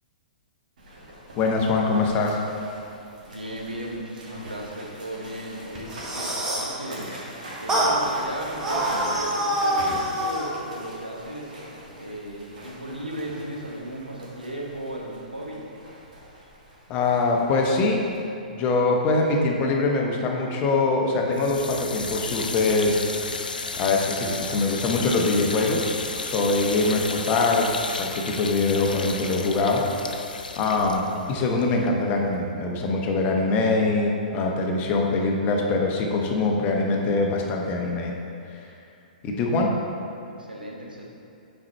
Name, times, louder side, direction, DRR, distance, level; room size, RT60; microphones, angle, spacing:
sound 1, 0.8-18.2, right 1 dB, 65° right, 1.6 m, -42 dB
voice 1, 1.4-2.4 16.9-18.0 18.5-23.0 23.8-25.9 26.2-29.8 30.6-38.1 39.2-39.7, left 3 dB, 30° left, 0 dB, 0.9 m, -23 dB
voice 2, 3.2-7.2 7.6-11.5 12.0-15.6 40.4-41.0, right 1 dB, 90° right, -2 dB, 1.1 m, -36 dB
sound 2, 5.8-6.8 7.7-8.0 8.6-10.5, right 1 dB, 15° right, 1.1 m, -25 dB
sound 3, 21.3-32.4, left 4 dB, 80° left, 0.5 m, -33 dB
6.2 x 4.5 x 4.3 m, 2.5 s
figure-of-eight pair, 115°, 5 cm